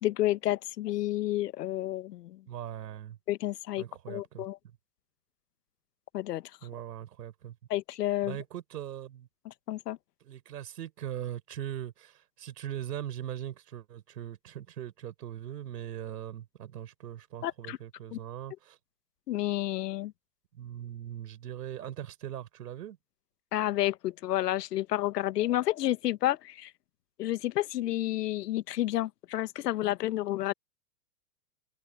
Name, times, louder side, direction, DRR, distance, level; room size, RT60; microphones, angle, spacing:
voice 1, 0.0-2.4 3.3-4.6 6.1-6.4 7.7-8.4 9.4-10.0 17.4-17.8 18.1-18.2 19.3-20.1 23.5-26.7 27.2-30.5, left 14 dB, 80° left, 1.2 m, -30 dB
voice 2, 2.5-3.2 3.8-4.5 6.6-7.6 8.2-9.3 10.2-18.8 20.5-23.0, right 11 dB, 85° right, 4.6 m, -40 dB
hypercardioid pair, 140°, 47 cm